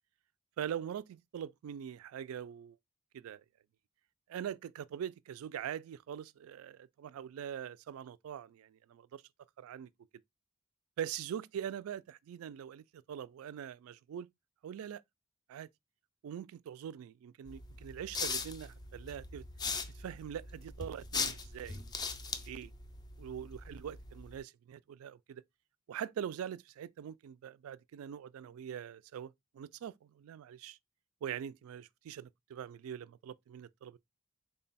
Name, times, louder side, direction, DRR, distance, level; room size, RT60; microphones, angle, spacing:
voice 1, 0.6-2.8 3.1-3.4 4.3-9.2 9.6-9.9 11.0-14.3 14.6-15.0 15.5-15.7 16.2-19.4 19.9-21.8 22.5-22.7 23.2-25.4 25.9-30.8 31.2-34.0, right 9 dB, 85° right, 0.3 m, -43 dB
sound 1, 17.5-24.4, left 4 dB, 20° left, 0.4 m, -40 dB
3.7 x 2.2 x 4.0 m
head